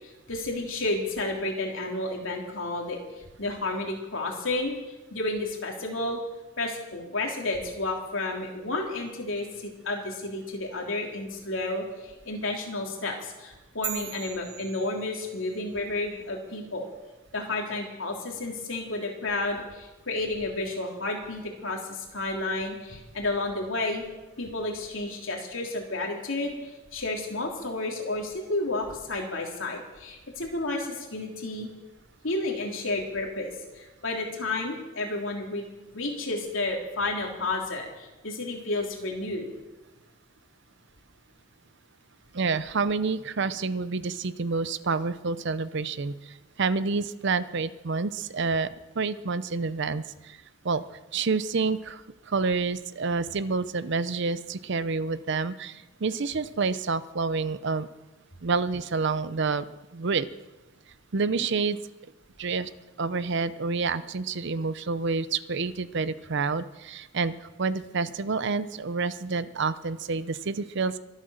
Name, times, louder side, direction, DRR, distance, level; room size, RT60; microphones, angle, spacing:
voice 1, 0.0-6.2 6.6-16.9 17.3-24.0 24.4-31.7 32.2-39.5, left 2 dB, 70° left, 0 dB, 3.4 m, -31 dB
sound 1, 13.8-15.6, right 8 dB, 35° right, 1.3 m, -38 dB
voice 2, 42.3-48.7 49.0-50.4 50.6-50.8 51.1-57.9 58.4-60.3 61.1-61.8 62.4-62.7 63.0-71.0, right 4 dB, 60° right, 15 dB, 0.7 m, -28 dB
24.0 x 8.3 x 6.5 m, 1.1 s
head